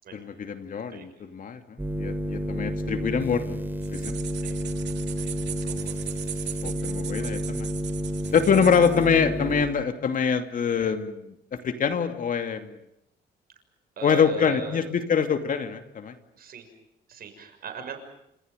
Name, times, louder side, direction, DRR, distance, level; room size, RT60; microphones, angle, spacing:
voice 1, 0.1-1.6 2.0-3.6 3.9-4.1 6.6-7.7 8.3-12.8 14.0-16.2, left 6 dB, 50° left, 8 dB, 2.7 m, -25 dB
voice 2, 0.7-1.3 4.4-4.6 5.2-5.3 5.6-6.0 6.8-6.9 7.2-7.3 14.0-14.8 16.3-16.7 17.1-18.0, right 6 dB, 55° right, 7 dB, 6.5 m, -39 dB
sound 1, 1.8-9.6, equal, 10° right, 3.5 m, -31 dB
sound 2, 3.8-9.1, right 11 dB, 75° right, 2.3 m, -39 dB
30.0 x 27.5 x 5.3 m, 0.80 s
cardioid pair, 125°, 18 cm